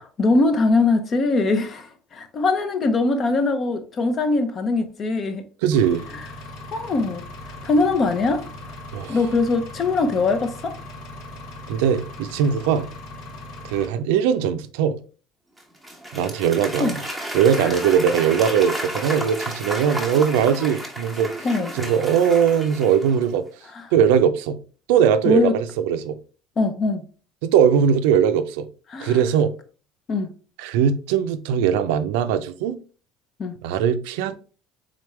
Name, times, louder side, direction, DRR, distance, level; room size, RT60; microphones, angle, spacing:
voice 1, 0.0-5.4 6.1-6.2 6.7-7.2 7.6-8.4 9.1-10.8 16.8-17.0 17.6-17.8 21.4-21.7 25.2-25.5 26.6-27.0 28.9-29.2 30.1-30.3 33.4-33.5, left 3 dB, 40° left, 0.7 m, -22 dB
voice 2, 5.6-6.0 8.9-9.2 11.7-12.9 13.6-15.0 16.1-17.0 17.3-21.3 21.7-23.5 23.9-24.6 24.9-26.2 27.4-28.7 29.0-29.6 30.6-32.8 33.6-34.3, right 8 dB, 85° right, 0.4 m, -20 dB
Engine, 5.7-13.9, left 1 dB, 65° left, 0.9 m, -39 dB
Applause / Crowd, 15.6-23.4, equal, 5° left, 1.1 m, -32 dB
3.7 x 3.4 x 3.1 m
supercardioid pair, 115°, 0 cm